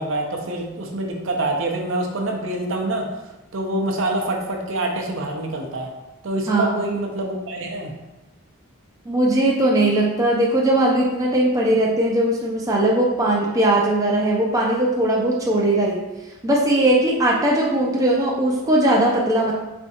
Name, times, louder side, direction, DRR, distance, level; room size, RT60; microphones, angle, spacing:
voice 1, 0.0-3.1 3.5-5.9 6.2-7.9, right 2 dB, 60° right, 1 dB, 0.6 m, -26 dB
voice 2, 6.5-7.0 9.1-16.0 16.4-19.5, right 1 dB, 15° right, -3 dB, 0.4 m, -19 dB
4.3 x 3.5 x 2.8 m, 1.0 s
head